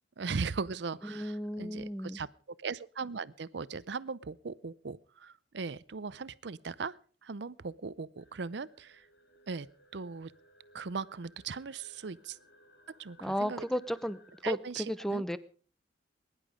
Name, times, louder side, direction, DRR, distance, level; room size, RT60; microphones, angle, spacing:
voice 1, 0.2-2.3 2.6-7.0 7.2-9.1 9.5-9.7 9.9-10.3 10.7-12.4 13.0-13.6 14.4-15.2, right 4 dB, 65° right, 20 dB, 0.6 m, -38 dB
voice 2, 1.0-2.2 13.2-14.2 14.4-15.4, equal, ahead, 15 dB, 0.7 m, -34 dB
sound 1, 8.2-14.4, equal, 65° left, 3.2 m, -63 dB
21.5 x 11.0 x 5.0 m, 0.42 s
head